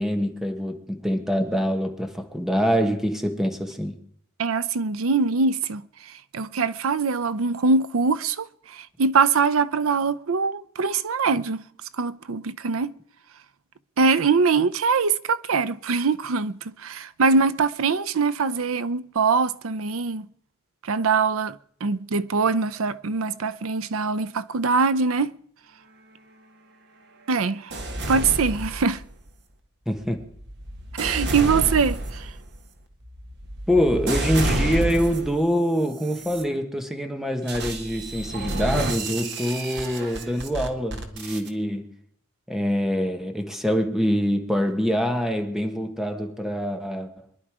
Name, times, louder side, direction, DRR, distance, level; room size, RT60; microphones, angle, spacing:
voice 1, 0.0-4.0 29.9-30.3 33.7-41.9 42.5-47.1, equal, ahead, 1.4 m, -25 dB
voice 2, 4.4-5.8 6.3-11.6 12.0-12.9 14.0-20.3 20.8-25.3 27.3-27.7 28.1-29.0 31.0-32.3, right 4 dB, 75° right, 0.6 m, -23 dB
sound 1, 27.7-29.3 30.0-35.5 36.0-36.4 37.5-41.5, right 1 dB, 55° right, 1.6 m, -30 dB
23.5 x 11.0 x 4.9 m
head